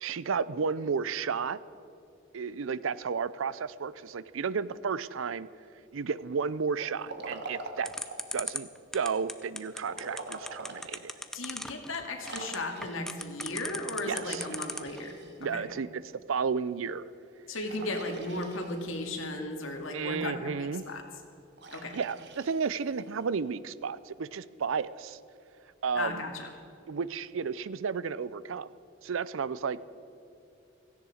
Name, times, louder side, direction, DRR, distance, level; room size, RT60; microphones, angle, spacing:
voice 1, 0.0-1.6 2.3-5.5 5.9-7.9 8.3-11.1 14.1-14.4 15.4-16.0 16.3-17.1 19.9-20.9 21.9-25.2 25.8-26.2 26.9-28.7 29.0-29.8, right 5 dB, 75° right, 18 dB, 0.5 m, -32 dB
Liquid, 6.7-8.4 9.8-10.9 11.4-11.5 12.2-13.2 14.0-15.6 17.7-19.0 21.6-23.2, right 3 dB, 60° right, 1.5 m, -44 dB
sound 1, 7.8-15.0, left 1 dB, ahead, 0.6 m, -36 dB
voice 2, 11.3-15.6 17.5-21.0 21.7-22.0 25.9-26.5, left 2 dB, 80° left, 3 dB, 2.1 m, -36 dB
16.5 x 15.0 x 5.0 m, 2.8 s
head